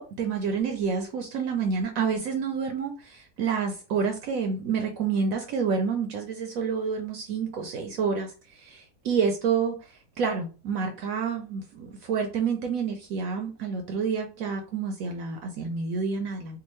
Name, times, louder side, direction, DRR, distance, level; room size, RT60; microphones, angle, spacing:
voice 1, 0.0-16.6, right 5 dB, 70° right, 4 dB, 0.8 m, -29 dB
3.5 x 2.3 x 3.0 m, 0.35 s
omnidirectional pair, 1.8 m